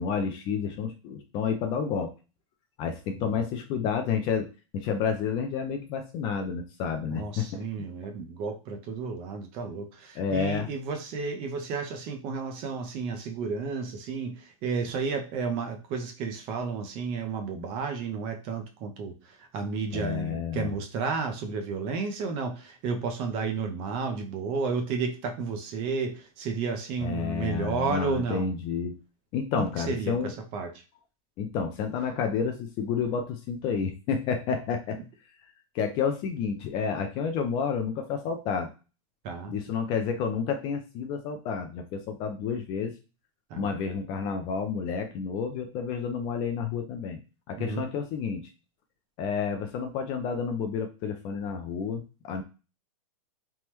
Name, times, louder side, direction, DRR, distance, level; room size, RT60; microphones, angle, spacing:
voice 1, 0.0-2.1 2.8-4.5 4.7-7.6 10.2-10.7 19.9-20.7 27.0-29.0 29.3-30.3 31.4-35.0 35.7-38.7 39.5-42.9 43.6-47.2 47.5-48.4 49.2-52.4, left 6 dB, 25° left, 6 dB, 0.4 m, -30 dB
voice 2, 7.0-28.5 29.6-30.7 39.2-39.5 43.5-43.7 47.6-47.9, right 5 dB, 30° right, 5 dB, 0.5 m, -32 dB
3.4 x 2.0 x 2.9 m, 0.31 s
supercardioid pair, 155°, 18 cm